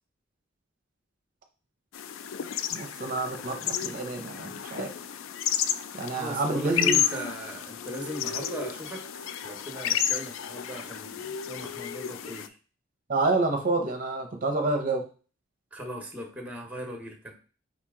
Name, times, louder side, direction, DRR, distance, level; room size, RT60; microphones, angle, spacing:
sound 1, 1.9-12.5, left 9 dB, 80° left, 0.3 m, -32 dB
voice 1, 2.7-4.9 5.9-7.0 13.1-15.0, right 2 dB, 45° right, 3 dB, 0.6 m, -28 dB
voice 2, 6.1-12.6 15.7-17.3, right 1 dB, 10° right, 3 dB, 0.9 m, -38 dB
4.9 x 2.9 x 3.5 m, 0.37 s
head